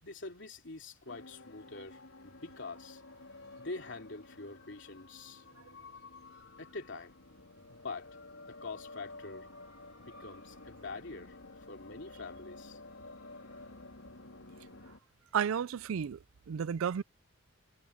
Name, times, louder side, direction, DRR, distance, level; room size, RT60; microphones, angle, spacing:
voice 1, 0.0-3.0 3.6-5.4 6.6-7.1 7.7-8.2 8.5-9.5 10.0-11.4 11.7-12.8, left 3 dB, 60° left, 3.0 m, -45 dB
sound 1, 1.1-15.0, left 2 dB, 85° left, 3.5 m, -52 dB
voice 2, 15.3-16.2 16.5-17.0, right 7 dB, 80° right, 0.4 m, -32 dB
head